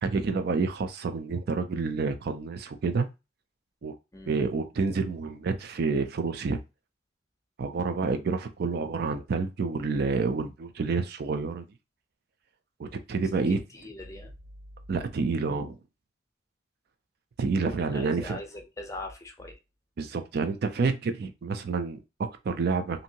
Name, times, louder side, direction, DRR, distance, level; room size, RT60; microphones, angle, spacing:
voice 1, 0.0-3.1 3.8-3.9 4.3-6.6 7.6-11.6 12.8-13.6 14.9-15.8 17.4-18.4 20.0-23.0, right 4 dB, 55° right, 0.4 m, -28 dB
voice 2, 13.5-14.3 17.9-19.5, left 2 dB, 15° left, 0.6 m, -41 dB
2.7 x 2.6 x 2.7 m
head